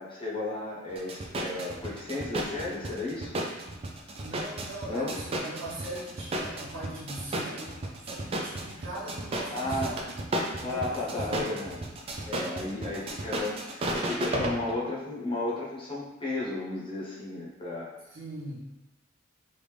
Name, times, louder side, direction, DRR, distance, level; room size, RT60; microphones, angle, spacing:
voice 1, 0.0-3.4 4.9-5.2 9.5-10.0 10.6-11.8 12.3-17.9, left 2 dB, 25° left, -6 dB, 0.9 m, -34 dB
sound 1, 0.9-14.7, right 1 dB, 30° right, 0.3 m, -34 dB
voice 2, 4.2-10.0 10.6-11.4 18.1-18.6, right 1 dB, 80° right, -6 dB, 1.1 m, -40 dB
3.4 x 2.6 x 3.2 m, 1.0 s
head